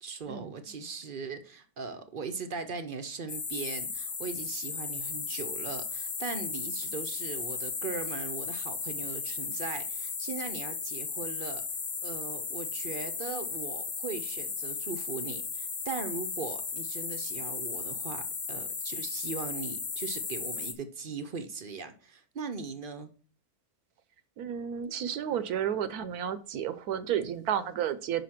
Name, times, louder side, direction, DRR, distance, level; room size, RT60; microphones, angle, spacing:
voice 1, 0.0-11.6 12.0-23.1, right 5 dB, 50° right, 0.6 m, -39 dB
sound 1, 3.3-20.7, left 5 dB, 35° left, 0.7 m, -35 dB
voice 2, 24.4-28.2, right 9 dB, 75° right, 1.2 m, -32 dB
5.6 x 5.0 x 5.8 m
omnidirectional pair, 1.7 m